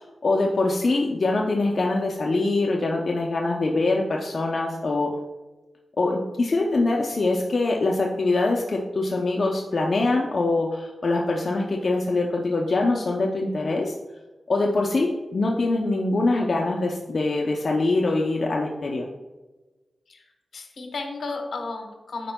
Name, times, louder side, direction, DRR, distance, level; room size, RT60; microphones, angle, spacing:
voice 1, 0.2-5.2 6.0-13.9 14.5-19.1, left 2 dB, 50° left, -1 dB, 0.6 m, -23 dB
voice 2, 20.5-22.3, left 3 dB, 75° left, 3 dB, 1.1 m, -33 dB
10.0 x 4.4 x 2.2 m, 1.1 s
cardioid pair, 75°, 0 cm